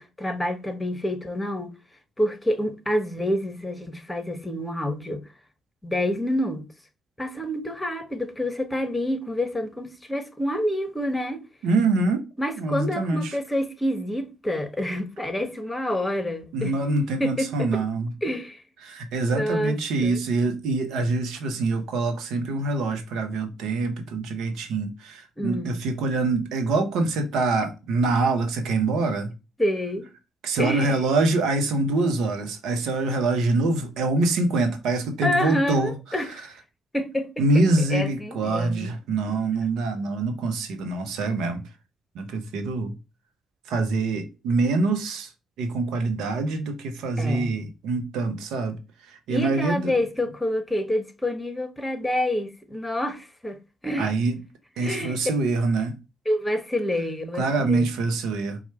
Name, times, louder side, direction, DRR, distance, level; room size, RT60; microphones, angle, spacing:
voice 1, 0.0-1.8 2.2-5.3 5.8-6.7 7.2-11.4 12.4-16.8 17.2-17.8 18.2-18.6 19.2-20.2 25.4-25.8 29.6-30.1 30.6-31.0 35.2-36.5 36.9-38.9 39.3-39.4 47.2-47.5 49.3-54.1 54.8-55.2 56.2-57.9, left 1 dB, 15° left, 1.1 m, -28 dB
voice 2, 11.6-12.2 12.6-13.4 16.5-18.1 18.8-29.3 30.4-35.9 37.4-41.6 42.1-42.9 43.7-45.3 45.6-48.8 49.0-49.9 54.0-54.4 54.8-55.9 57.4-58.6, right 3 dB, 70° right, 0.8 m, -25 dB
4.4 x 2.3 x 4.3 m
hypercardioid pair, 45°, 0 cm